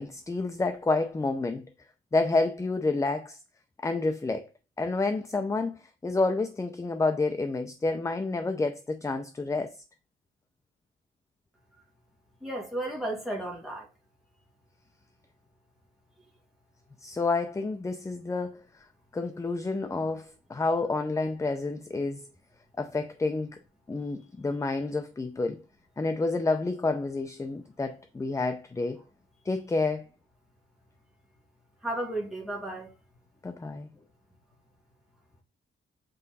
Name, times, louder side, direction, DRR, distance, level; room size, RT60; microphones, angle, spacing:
voice 1, 0.0-1.6 2.1-3.4 3.8-4.5 4.8-9.8 17.0-18.6 19.1-22.3 22.8-23.6 23.9-25.6 26.0-29.0 29.5-30.1 33.4-33.9, left 3 dB, 15° left, 0.5 m, -29 dB
voice 2, 12.4-13.9 31.8-32.9, right 1 dB, ahead, 2.4 m, -33 dB
7.7 x 4.8 x 4.1 m
wide cardioid pair, 165°, 21 cm